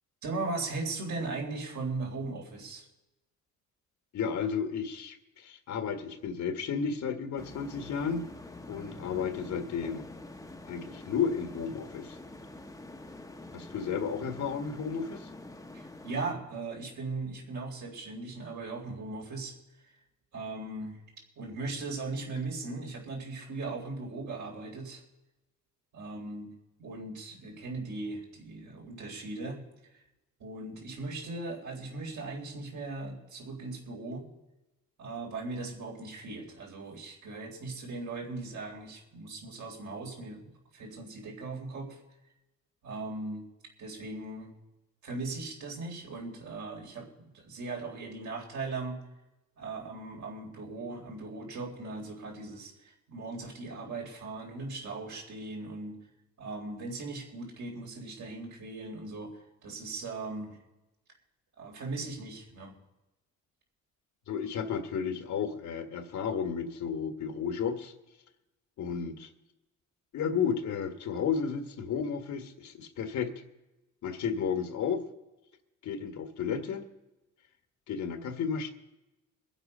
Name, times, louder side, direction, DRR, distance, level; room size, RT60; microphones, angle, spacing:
voice 1, 0.2-2.9 15.7-19.5 20.3-21.0 21.4-25.0 25.9-26.5 26.8-29.6 29.9-30.0 30.4-34.3 35.0-42.0 42.8-43.5 43.8-44.5 45.0-49.0 49.6-56.0 56.4-60.6 61.6-62.8, right 3 dB, 70° right, 0 dB, 4.0 m, -38 dB
voice 2, 4.1-8.2 8.7-10.0 10.7-12.2 13.5-15.3 64.3-67.9 68.8-69.3 70.1-73.3 74.0-75.0 75.8-76.9 77.9-78.7, left 6 dB, 70° left, 7 dB, 1.6 m, -33 dB
sound 1, 7.4-16.3, left 2 dB, 10° left, 0.9 m, -46 dB
22.5 x 8.0 x 5.5 m, 0.99 s
cardioid pair, 90°, 30 cm